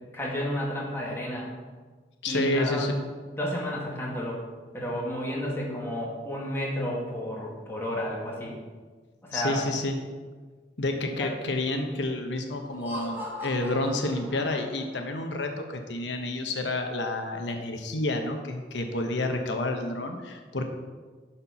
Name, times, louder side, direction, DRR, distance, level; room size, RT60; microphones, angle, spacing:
voice 1, 0.1-1.5 2.3-3.0 3.3-4.4 4.7-8.6 9.2-9.6 11.2-11.3, equal, 15° left, -4 dB, 2.0 m, -31 dB
voice 2, 2.2-2.9 9.3-10.0 10.8-20.6, left 2 dB, 90° left, 4 dB, 0.9 m, -29 dB
Laughter, 12.7-15.0, left 1 dB, 10° right, 1.5 m, -39 dB
11.0 x 4.4 x 5.6 m, 1.4 s
head